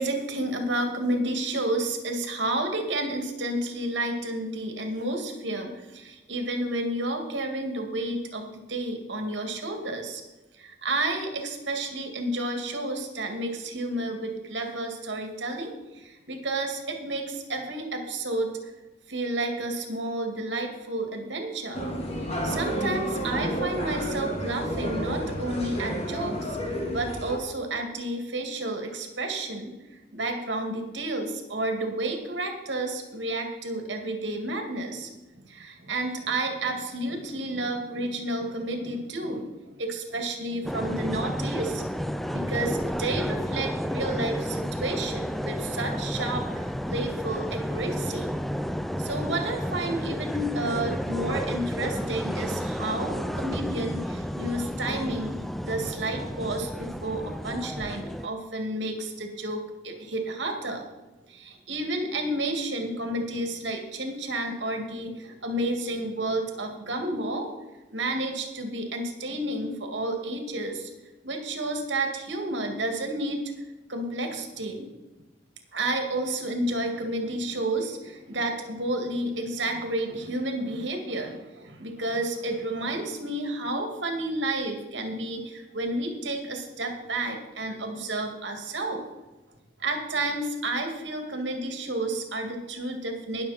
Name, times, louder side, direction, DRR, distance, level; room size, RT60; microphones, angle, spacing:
voice 1, 0.0-10.2 10.6-18.5 19.1-21.8 22.4-29.7 30.1-35.1 35.5-41.8 42.3-48.3 49.0-55.3 55.6-60.8 61.3-67.5 67.9-70.9 71.2-73.4 73.9-74.9 75.7-89.0 89.8-93.4, right 2 dB, 80° right, 3 dB, 2.2 m, -31 dB
sound 1, 21.7-27.4, equal, 35° left, 1.9 m, -30 dB
sound 2, 40.6-58.3, equal, ahead, 0.4 m, -31 dB
20.5 x 6.9 x 4.3 m, 1.1 s
head